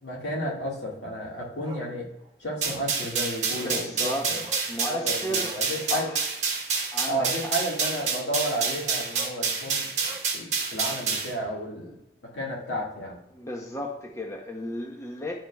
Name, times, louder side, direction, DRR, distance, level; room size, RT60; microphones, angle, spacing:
voice 1, 0.0-2.1 2.4-4.4 4.8-6.1 7.1-12.0 12.3-13.2, equal, 85° left, -4 dB, 2.0 m, -32 dB
Bark, 1.6-1.9 2.2-2.3 2.6-2.9 3.5-3.8 4.4-4.7 5.4-5.7 7.3-7.4 7.8-8.0 8.3-8.6 9.1-9.4 10.0-11.0 11.3-11.4, right 3 dB, 25° right, 0.6 m, -44 dB
sound 1, 2.6-11.3, right 5 dB, 40° right, 1.3 m, -28 dB
voice 2, 3.6-4.3 4.7-6.2 6.9-7.5 13.3-15.3, equal, 15° left, 1 dB, 0.7 m, -34 dB
10.5 x 4.9 x 2.3 m, 0.92 s
head